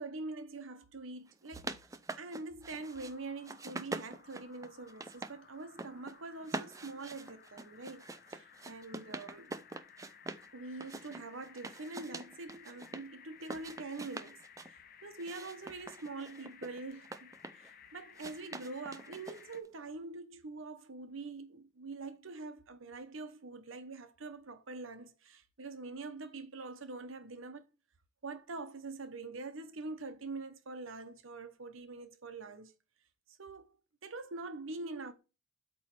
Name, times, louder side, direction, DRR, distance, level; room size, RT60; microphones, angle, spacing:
voice 1, 0.0-1.7 2.2-9.6 10.5-14.4 14.7-27.6 28.2-32.7 33.4-33.8 34.0-35.1, right 3 dB, 80° right, 0.9 m, -44 dB
sound 1, 1.3-3.1 3.4-5.3 5.6-6.1 6.4-10.5 10.8-13.0 13.4-14.7 15.2-17.7 18.2-19.7, right 2 dB, 15° right, 0.4 m, -44 dB
sound 2, 2.8-19.6, left 7 dB, 45° left, 0.7 m, -58 dB
8.4 x 3.1 x 5.9 m
head